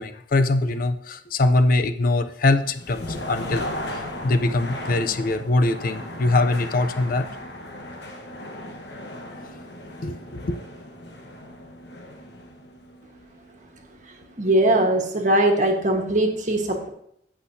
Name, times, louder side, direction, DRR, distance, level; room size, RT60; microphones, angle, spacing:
voice 1, 0.0-3.6 3.9-7.3 10.0-10.6, left 2 dB, 50° left, 10 dB, 0.5 m, -22 dB
sound 1, 2.6-14.4, left 1 dB, 70° left, 1.2 m, -36 dB
voice 2, 14.4-16.9, right 1 dB, 45° right, 3 dB, 1.4 m, -20 dB
16.5 x 5.9 x 2.7 m, 0.72 s
head